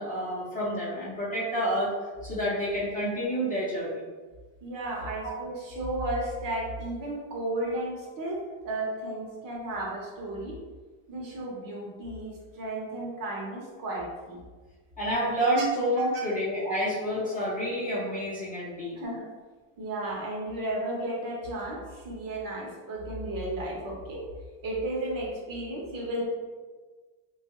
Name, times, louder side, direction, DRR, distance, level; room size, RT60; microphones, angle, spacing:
voice 1, 0.0-1.9 2.2-4.1 15.0-19.0, equal, 15° left, -8 dB, 0.7 m, -29 dB
voice 2, 4.6-10.6 11.1-14.4 19.0-19.2 19.8-24.2 24.6-26.2, right 1 dB, 45° right, -3 dB, 0.8 m, -33 dB
3.5 x 2.3 x 2.9 m, 1.4 s
cardioid pair, 160°, 47 cm